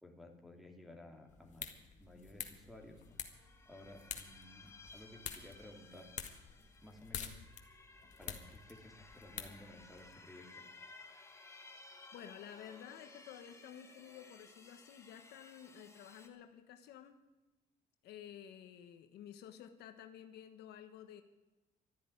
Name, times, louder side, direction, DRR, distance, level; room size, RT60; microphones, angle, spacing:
voice 1, 0.0-1.7 2.0-6.1 6.8-7.4 8.2-10.7, left 1 dB, ahead, 3 dB, 3.0 m, -55 dB
sound 1, 1.3-10.1, left 7 dB, 45° left, 1.9 m, -49 dB
sound 2, 2.5-2.6 2.9-16.3, left 3 dB, 15° left, 2.1 m, -58 dB
voice 2, 12.1-17.2 18.0-21.2, left 9 dB, 75° left, 8 dB, 1.3 m, -52 dB
13.0 x 10.5 x 9.7 m, 1.1 s
cardioid pair, 110°, 17 cm